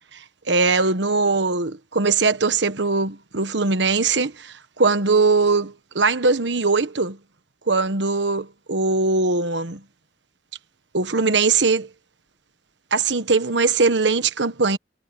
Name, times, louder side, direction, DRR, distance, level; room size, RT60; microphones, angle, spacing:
voice 1, 0.5-7.2 7.7-9.8 10.9-11.9 12.9-14.8, right 4 dB, 75° right, 1.3 m, -21 dB
head